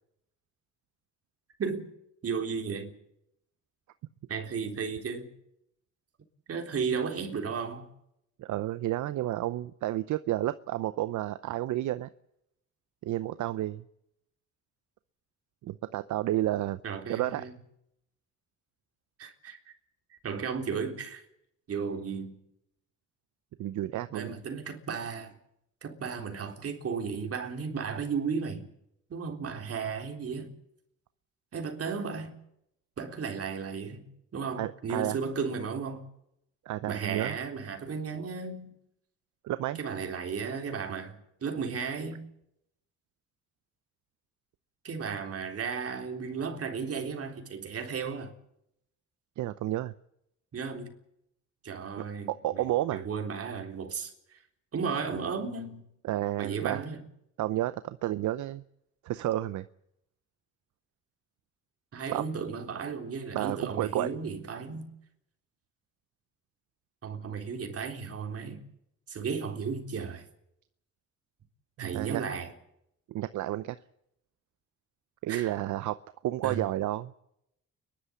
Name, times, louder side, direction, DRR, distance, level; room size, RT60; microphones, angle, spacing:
voice 1, 2.2-2.9 4.3-5.3 6.5-7.9 16.8-17.5 19.2-19.6 20.2-21.2 21.7-22.4 23.9-25.4 25.8-28.7 29.1-30.5 31.5-32.4 33.0-36.1 36.9-38.7 39.8-42.3 44.8-48.3 50.5-50.9 51.6-52.7 52.9-54.4 54.7-55.9 56.4-57.0 61.9-64.9 67.0-68.6 69.1-70.3 71.8-72.5 75.3-75.5 76.4-76.7, right 5 dB, 50° right, 3.8 m, -34 dB
voice 2, 8.4-12.1 13.0-13.8 15.6-16.8 17.1-17.4 23.6-24.3 34.6-35.2 36.7-37.4 39.4-39.8 49.4-49.9 51.9-53.1 56.1-56.8 57.4-58.6 59.0-59.7 62.1-62.2 63.3-64.1 71.8-72.2 73.1-73.8 75.2-76.0 76.2-77.1, right 14 dB, 75° right, 0.7 m, -31 dB
28.5 x 11.5 x 8.9 m
cardioid pair, 90°, 30 cm